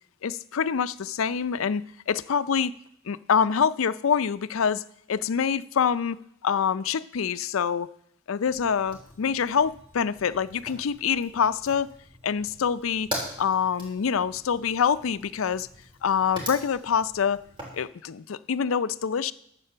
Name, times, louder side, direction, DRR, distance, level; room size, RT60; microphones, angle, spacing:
voice 1, 0.2-2.7 3.1-7.9 8.3-11.9 12.2-13.1 13.4-15.7 16.0-17.4 17.7-19.3, left 7 dB, 90° left, 0.5 m, -26 dB
Fire, 8.4-17.8, equal, 25° right, 3.3 m, -42 dB
11.0 x 7.6 x 6.8 m
head